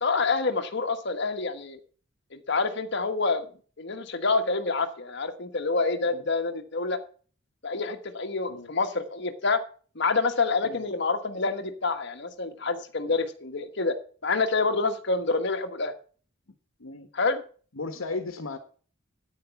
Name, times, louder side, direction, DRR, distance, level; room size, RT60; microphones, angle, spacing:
voice 1, 0.0-1.8 2.3-3.5 3.8-7.0 7.6-9.6 9.9-14.0 14.2-15.9 17.1-17.4, left 4 dB, 60° left, 7 dB, 1.4 m, -27 dB
voice 2, 17.7-18.6, left 3 dB, 90° left, 7 dB, 1.3 m, -35 dB
9.5 x 9.4 x 5.9 m, 0.42 s
head